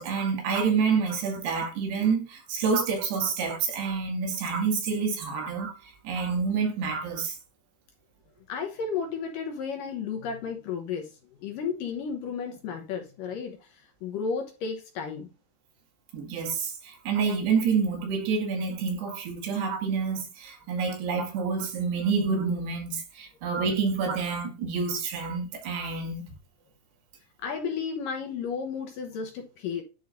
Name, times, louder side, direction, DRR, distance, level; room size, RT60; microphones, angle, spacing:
voice 1, 0.0-7.4 16.1-26.3, right 5 dB, 80° right, 4.2 m, -28 dB
voice 2, 8.5-11.1 11.4-15.3 27.4-29.8, left 6 dB, 70° left, 2.2 m, -33 dB
10.5 x 4.8 x 2.6 m
omnidirectional pair, 4.7 m